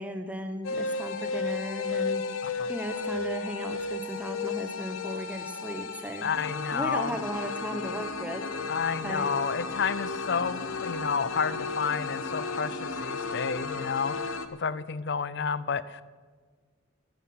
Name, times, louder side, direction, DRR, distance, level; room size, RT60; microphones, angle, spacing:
voice 1, 0.0-2.2 2.7-6.3 6.7-8.4 9.0-9.3, equal, 5° right, 6 dB, 1.0 m, -36 dB
sound 1, 0.6-14.5, left 4 dB, 75° left, 1.0 m, -34 dB
voice 2, 6.2-7.2 8.7-16.0, left 6 dB, 55° left, 17 dB, 0.5 m, -31 dB
11.5 x 10.0 x 9.5 m, 1.5 s
head